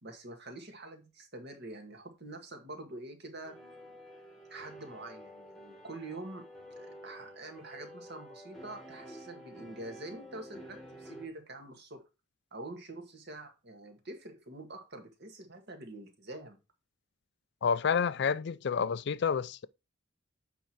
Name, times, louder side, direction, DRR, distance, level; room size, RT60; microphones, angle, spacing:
voice 1, 0.0-3.6 4.5-6.4 7.0-12.0 12.5-16.6, right 2 dB, 50° right, 1.8 m, -46 dB
sound 1, 3.4-11.3, equal, ahead, 1.4 m, -50 dB
voice 2, 17.6-19.7, left 6 dB, 55° left, 0.4 m, -29 dB
8.0 x 4.7 x 4.5 m
head